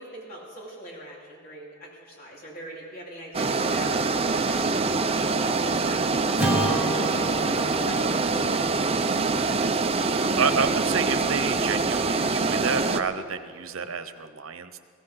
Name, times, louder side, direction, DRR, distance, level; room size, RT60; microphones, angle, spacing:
voice 1, 0.0-5.0 5.4-7.5 7.9-8.9, right 1 dB, 45° left, -4 dB, 4.2 m, -42 dB
sound 1, 3.3-13.0, right 3 dB, 30° right, 0.6 m, -25 dB
Acoustic guitar / Strum, 6.4-10.8, equal, 5° right, 1.9 m, -32 dB
voice 2, 10.4-14.8, right 5 dB, 80° right, 9 dB, 1.0 m, -29 dB
22.0 x 16.5 x 4.0 m, 2.1 s
head